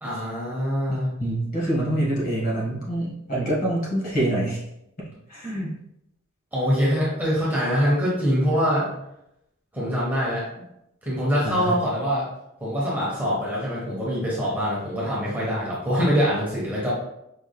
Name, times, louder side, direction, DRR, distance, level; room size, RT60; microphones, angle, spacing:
voice 1, 0.0-1.1 6.5-8.9 9.7-10.4 11.0-12.3 12.6-16.9, equal, 10° right, -7 dB, 0.9 m, -24 dB
voice 2, 0.9-4.6 5.3-5.8 8.5-8.7 11.4-11.8, right 1 dB, 40° left, -6 dB, 1.5 m, -26 dB
5.1 x 3.4 x 2.3 m, 0.83 s
head